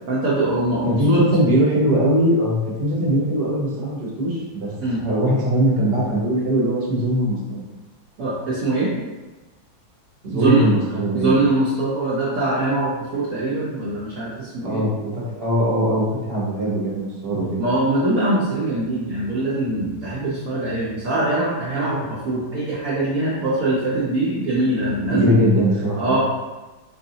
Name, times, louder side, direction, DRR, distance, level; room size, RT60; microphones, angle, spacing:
voice 1, 0.1-1.2 4.8-5.0 8.2-8.9 10.3-10.7 11.1-14.8 17.6-25.4 26.0-26.2, right 2 dB, 65° right, -8 dB, 0.8 m, -22 dB
voice 2, 0.9-7.7 10.2-11.5 14.6-17.6 25.1-26.2, equal, 40° right, -6 dB, 1.0 m, -21 dB
4.7 x 2.6 x 2.7 m, 1.2 s
omnidirectional pair, 2.2 m